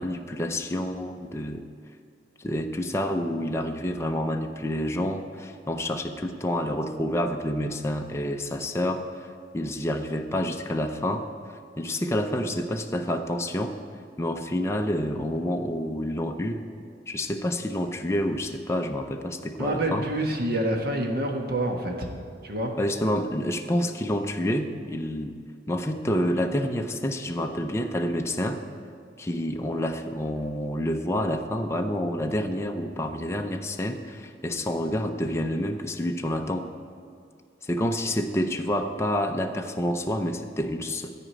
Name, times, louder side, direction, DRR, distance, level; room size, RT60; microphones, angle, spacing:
voice 1, 0.0-1.7 2.4-9.0 9.5-13.8 14.2-16.6 17.1-20.1 22.8-25.3 25.7-28.6 29.2-36.7 37.6-41.1, left 1 dB, 15° left, 4 dB, 0.5 m, -28 dB
voice 2, 19.6-22.1 22.4-22.7, right 1 dB, 55° right, 2 dB, 1.4 m, -27 dB
13.0 x 5.0 x 8.8 m, 2.3 s
head